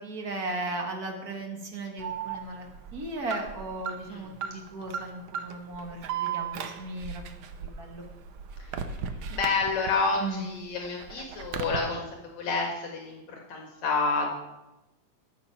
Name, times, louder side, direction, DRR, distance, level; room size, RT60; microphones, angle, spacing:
voice 1, 0.0-2.7 2.9-7.2 7.6-8.0 10.2-10.4, right 2 dB, 45° right, 2 dB, 1.4 m, -36 dB
Alarm, 2.0-10.2 10.5-11.8, right 7 dB, 90° right, 1.1 m, -36 dB
voice 2, 9.3-14.3, left 4 dB, 70° left, 0 dB, 2.7 m, -29 dB
12.5 x 7.2 x 5.7 m, 0.99 s
omnidirectional pair, 3.4 m